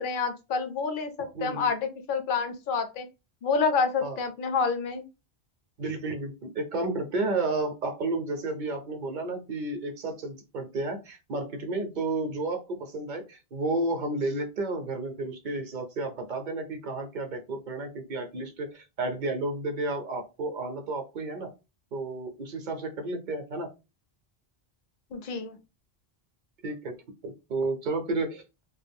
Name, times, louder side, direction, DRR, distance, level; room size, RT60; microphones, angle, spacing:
voice 1, 0.0-3.1 3.4-5.1 25.1-25.6, left 5 dB, 60° left, 8 dB, 0.7 m, -28 dB
voice 2, 1.2-1.7 4.0-4.2 5.8-21.5 21.9-23.7 26.6-26.9 27.2-28.6, right 2 dB, 55° right, 6 dB, 0.6 m, -32 dB
2.3 x 2.1 x 3.4 m, 0.27 s
omnidirectional pair, 1.0 m